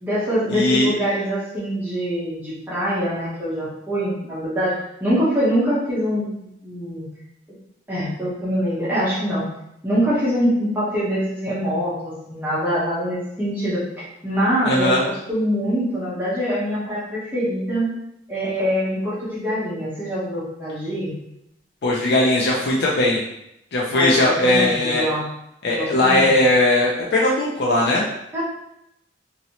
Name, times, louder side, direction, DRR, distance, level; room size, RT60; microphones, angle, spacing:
voice 1, 0.0-7.1 7.9-9.5 9.8-17.9 18.3-21.1 23.9-25.3 25.7-26.3 28.3-28.4, equal, 10° right, -10 dB, 0.9 m, -24 dB
voice 2, 0.5-0.9 14.7-15.0 21.8-23.2 23.7-25.0 25.6-28.0, left 1 dB, 65° left, -4 dB, 0.5 m, -19 dB
2.9 x 2.7 x 2.9 m, 0.81 s
head